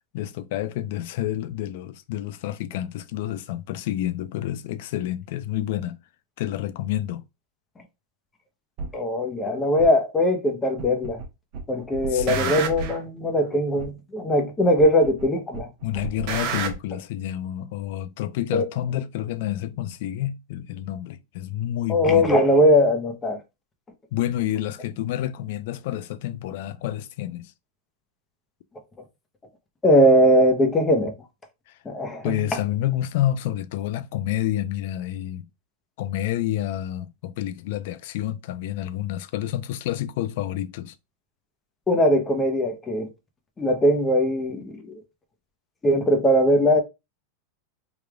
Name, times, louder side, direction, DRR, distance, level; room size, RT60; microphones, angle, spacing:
voice 1, 0.1-6.0 6.4-7.2 12.1-12.6 15.8-22.3 24.1-27.5 32.2-35.5 36.0-40.9, left 12 dB, 65° left, 0.4 m, -29 dB
sound 1, 8.8-8.9 9.8-9.9 10.8-11.3 11.5-13.0 13.8-13.9 14.8-15.3 15.5-16.8, right 6 dB, 50° right, 0.9 m, -30 dB
voice 2, 8.9-11.2 11.7-15.7 18.5-18.6 21.9-23.4 29.8-31.1 31.8-32.3 41.9-43.1 43.6-45.0 45.8-46.8, equal, 15° left, 0.8 m, -20 dB
3.3 x 2.4 x 3.4 m
supercardioid pair, 140°, 0 cm